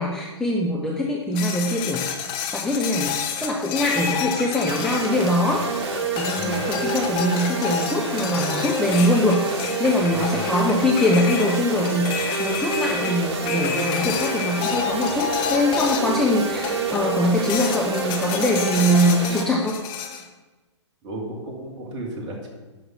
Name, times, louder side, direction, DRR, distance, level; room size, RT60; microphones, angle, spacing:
voice 1, 0.0-2.1 2.5-5.6 6.2-19.8, left 1 dB, 5° left, -3 dB, 0.8 m, -23 dB
sound 1, 1.4-5.7 6.2-16.2 16.6-17.1 17.5-20.2, left 7 dB, 30° left, 1.1 m, -30 dB
sound 2, 4.7-19.4, right 3 dB, 55° right, 1.9 m, -28 dB
voice 2, 6.4-6.7 10.1-10.5 21.0-22.5, right 1 dB, 30° right, 0 dB, 2.4 m, -34 dB
11.0 x 5.9 x 6.2 m, 1.2 s
figure-of-eight pair, 115°, 15 cm